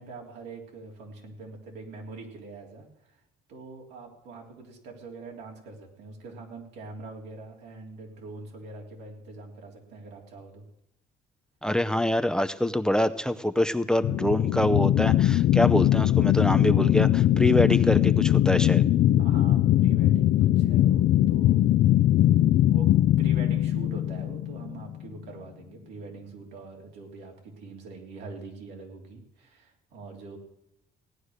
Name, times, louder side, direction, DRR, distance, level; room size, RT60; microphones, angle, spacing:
voice 1, 0.0-3.2 3.5-10.6 19.2-21.6 22.7-30.4, right 3 dB, 85° right, 1 dB, 3.4 m, -43 dB
voice 2, 11.6-18.8, left 1 dB, 5° left, 11 dB, 0.6 m, -25 dB
sound 1, 14.0-24.9, left 13 dB, 65° left, 0.5 m, -21 dB
17.0 x 9.7 x 6.5 m, 0.82 s
cardioid pair, 110°, 17 cm